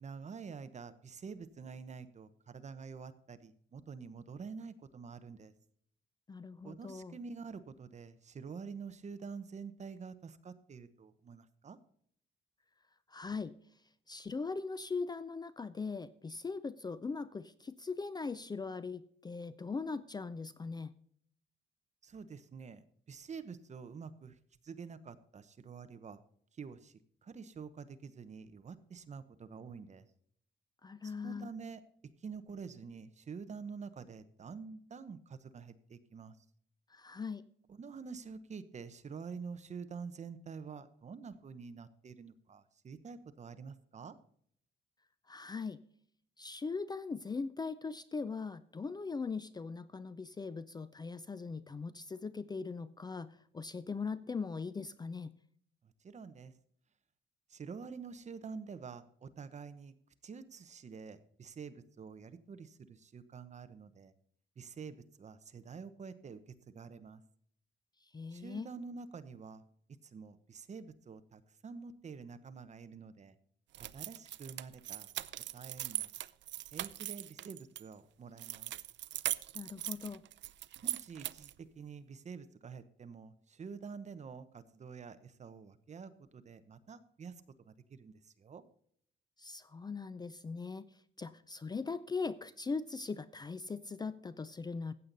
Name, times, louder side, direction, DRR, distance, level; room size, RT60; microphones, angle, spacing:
voice 1, 0.0-5.5 6.6-11.8 22.0-24.4 24.6-26.2 26.6-30.1 31.0-31.8 32.2-36.4 37.8-44.2 55.8-56.5 57.5-59.9 60.2-64.1 64.6-67.2 68.3-69.6 70.0-73.4 73.8-75.1 75.5-76.1 76.7-78.7 80.8-87.3 87.6-88.6, right 5 dB, 35° right, 11 dB, 0.9 m, -48 dB
voice 2, 6.3-7.2 13.1-13.6 14.1-20.9 30.8-31.5 36.9-37.4 45.3-45.8 46.4-55.4 68.0-68.7 79.5-80.2 89.4-90.9 91.2-94.9, left 4 dB, 20° left, 15 dB, 0.4 m, -40 dB
sound 1, 73.7-77.8 78.4-81.6, right 13 dB, 75° right, 0.5 m, -40 dB
15.0 x 8.4 x 4.0 m, 0.64 s
wide cardioid pair, 150°, 19 cm